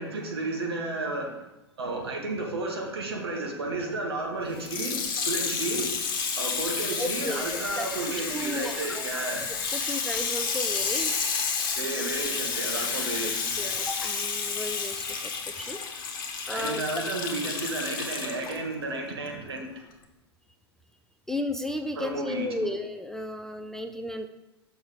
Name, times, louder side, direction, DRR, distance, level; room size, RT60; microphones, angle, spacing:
voice 1, 0.0-1.4 1.8-5.9 6.4-9.4 11.8-13.8 16.5-19.9 21.9-22.7, right 2 dB, 65° right, 1 dB, 1.8 m, -32 dB
Water tap faucet / Sink (filling or washing), 4.6-18.6 19.3-19.4, left 5 dB, 50° left, 1.1 m, -31 dB
voice 2, 7.0-7.9 8.3-9.3 9.7-11.2 13.2-15.8 16.5-16.8 21.3-24.3, left 1 dB, 5° left, 5 dB, 0.4 m, -34 dB
6.3 x 5.9 x 4.7 m, 0.99 s
figure-of-eight pair, 95°, 14 cm